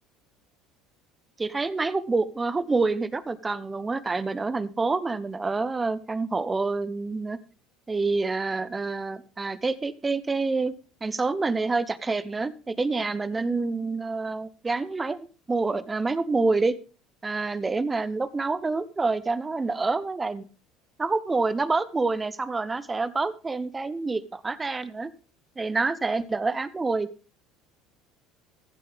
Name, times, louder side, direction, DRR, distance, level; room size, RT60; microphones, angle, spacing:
voice 1, 1.4-7.4 7.9-10.7 11.0-15.2 15.5-16.7 17.2-20.5 21.0-25.1 25.6-27.1, right 3 dB, 20° right, 15 dB, 1.0 m, -27 dB
15.0 x 7.8 x 3.5 m, 0.37 s
hypercardioid pair, 80°, 0 cm